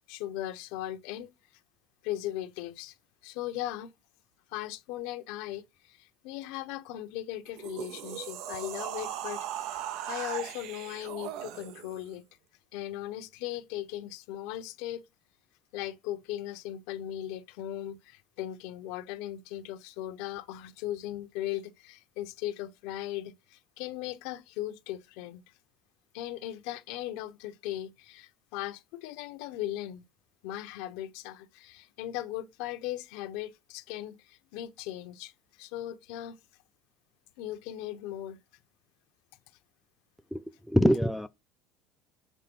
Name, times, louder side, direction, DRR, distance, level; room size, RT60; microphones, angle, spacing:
voice 1, 0.1-1.3 2.0-3.0 3.2-3.9 4.5-12.2 12.7-15.0 15.7-25.4 26.1-30.1 30.4-35.3 35.6-36.4 37.4-38.4, left 13 dB, 75° left, 0.9 m, -38 dB
sound 1, 7.5-12.1, right 11 dB, 65° right, 0.5 m, -38 dB
voice 2, 40.3-41.3, equal, ahead, 0.4 m, -25 dB
7.4 x 3.4 x 5.4 m
cardioid pair, 150°, 0 cm